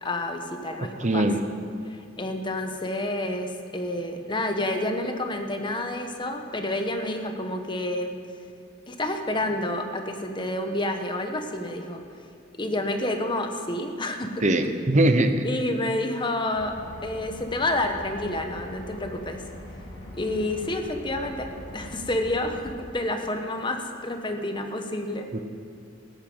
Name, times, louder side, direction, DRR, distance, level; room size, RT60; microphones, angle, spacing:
voice 1, 0.0-1.2 1.9-8.1 8.9-12.0 12.6-14.4 15.4-19.4 20.1-25.4, left 1 dB, 25° left, 5 dB, 1.2 m, -29 dB
voice 2, 0.8-1.4 14.4-15.4, right 1 dB, 40° right, 8 dB, 0.9 m, -21 dB
sound 1, 16.5-22.7, left 1 dB, 65° left, 4.1 m, -42 dB
15.0 x 11.0 x 8.0 m, 2.3 s
head